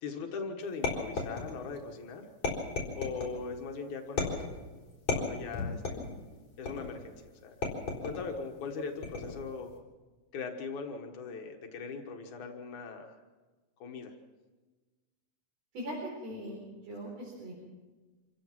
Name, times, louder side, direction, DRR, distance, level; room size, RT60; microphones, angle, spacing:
voice 1, 0.0-2.3 2.9-4.5 5.2-6.0 6.6-7.1 7.4-7.6 8.0-9.7 10.3-13.2 13.8-14.1, left 4 dB, 85° left, 3 dB, 3.0 m, -40 dB
sound 1, 0.8-1.8 2.4-3.4 4.2-4.6 5.1-6.1 6.7-7.1 7.6-8.3 9.0-9.5, left 4 dB, 65° left, 5.3 m, -34 dB
voice 2, 15.7-17.5, equal, 60° right, -4 dB, 5.6 m, -40 dB
26.5 x 16.0 x 6.1 m, 1.3 s
omnidirectional pair, 3.3 m